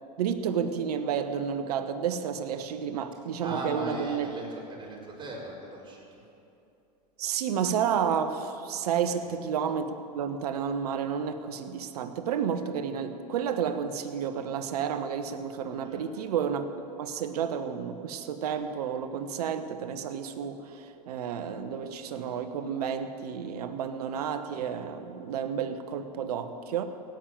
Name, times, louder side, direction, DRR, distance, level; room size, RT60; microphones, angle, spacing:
voice 1, 0.2-4.3 7.2-16.7 17.0-26.9, right 7 dB, 70° right, 9 dB, 1.2 m, -31 dB
voice 2, 3.4-6.2 9.0-9.2 15.8-16.1, right 2 dB, 25° right, -3 dB, 4.8 m, -38 dB
16.0 x 9.1 x 9.2 m, 2.8 s
hypercardioid pair, 85°, 21 cm